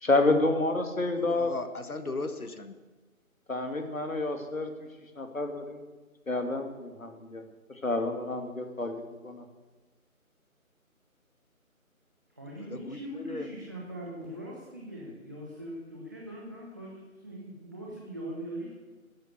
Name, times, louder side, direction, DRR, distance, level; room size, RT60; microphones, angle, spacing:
voice 1, 0.0-1.5 3.5-4.9 5.1-5.9 6.3-7.4 7.8-8.9 9.2-9.4, left 2 dB, 70° left, 5 dB, 2.7 m, -29 dB
voice 2, 1.2-2.8 12.6-13.5, left 2 dB, 85° left, 9 dB, 1.6 m, -37 dB
voice 3, 12.3-18.7, right 1 dB, 15° right, -4 dB, 1.0 m, -41 dB
13.5 x 11.0 x 9.8 m, 1.2 s
figure-of-eight pair, 160°, 43 cm